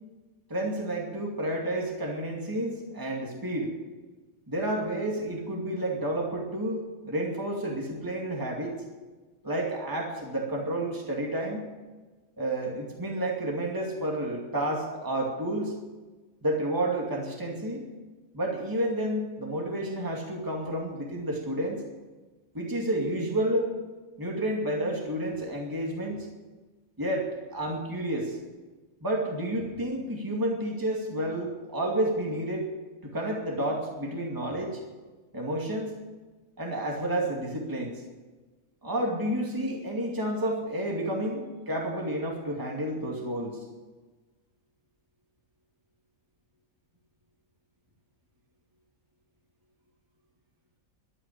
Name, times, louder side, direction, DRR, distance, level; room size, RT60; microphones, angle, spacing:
voice 1, 0.5-3.7 4.5-8.7 9.4-11.7 12.4-15.7 16.4-17.9 18.3-21.8 22.5-23.7 24.2-26.3 27.0-28.4 29.0-32.7 33.0-34.8 35.3-35.9 36.6-37.9 38.8-43.6, right 1 dB, 15° right, -1 dB, 2.4 m, -30 dB
12.5 x 9.0 x 10.0 m, 1.3 s
omnidirectional pair, 1.4 m